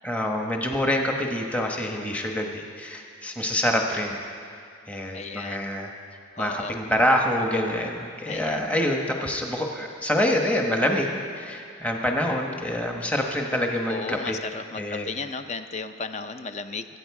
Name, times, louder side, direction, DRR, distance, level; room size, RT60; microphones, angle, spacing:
voice 1, 0.0-4.2 4.9-5.9 6.4-14.4 14.8-15.1, left 1 dB, 5° left, 1 dB, 1.0 m, -26 dB
voice 2, 5.1-5.7 6.4-6.7 8.3-8.7 13.9-16.9, left 4 dB, 35° left, 10 dB, 0.5 m, -34 dB
23.0 x 9.0 x 4.7 m, 2.3 s
head